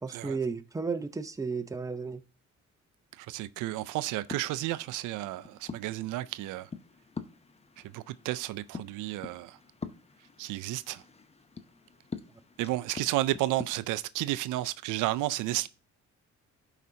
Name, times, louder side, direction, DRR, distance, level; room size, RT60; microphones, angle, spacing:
voice 1, 0.0-2.2, right 4 dB, 10° right, 0.7 m, -33 dB
voice 2, 3.2-6.7 7.8-9.6 10.4-11.0 12.6-15.7, right 16 dB, 90° right, 0.5 m, -32 dB
sound 1, 3.7-13.6, left 5 dB, 20° left, 0.7 m, -46 dB
12.0 x 5.0 x 2.7 m
cardioid pair, 90°, 30 cm